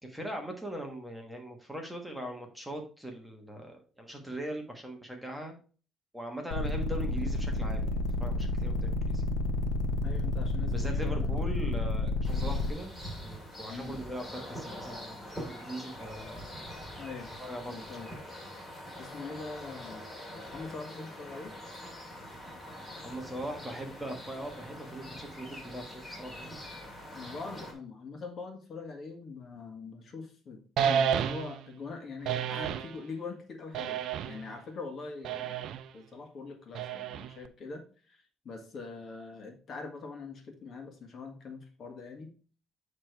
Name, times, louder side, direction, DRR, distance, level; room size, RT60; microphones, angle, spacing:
voice 1, 0.0-5.5 6.1-9.2 10.7-16.7 17.4-18.2 23.0-26.5, right 1 dB, 5° right, 3 dB, 1.3 m, -40 dB
sound 1, 6.5-12.7, left 2 dB, 85° left, 1.1 m, -30 dB
voice 2, 10.0-11.3 13.7-14.0 17.0-17.3 17.7-18.1 18.5-18.7 19.0-20.1 20.5-21.5 27.1-35.7 35.9-42.3, left 4 dB, 45° left, 4 dB, 1.6 m, -43 dB
sound 2, 12.2-27.7, left 1 dB, 15° left, 2.3 m, -44 dB
sound 3, 30.8-31.7 32.2-32.9 33.7-34.5 35.2-35.9 36.7-37.5, right 8 dB, 65° right, 0.5 m, -31 dB
8.8 x 3.3 x 4.5 m, 0.39 s
cardioid pair, 120°, 0 cm